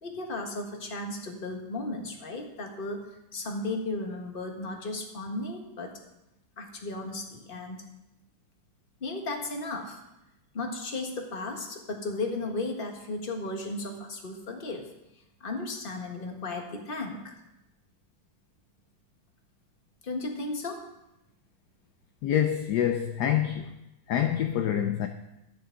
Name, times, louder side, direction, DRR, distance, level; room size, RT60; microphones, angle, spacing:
voice 1, 0.0-3.1 3.3-5.9 6.6-7.8 9.0-10.0 10.5-14.9 15.4-17.4 20.0-20.8, left 2 dB, 30° left, 1.4 m, -35 dB
voice 2, 22.2-23.7 24.1-25.1, left 10 dB, 70° left, 1.1 m, -26 dB
13.5 x 9.6 x 3.8 m
omnidirectional pair, 2.2 m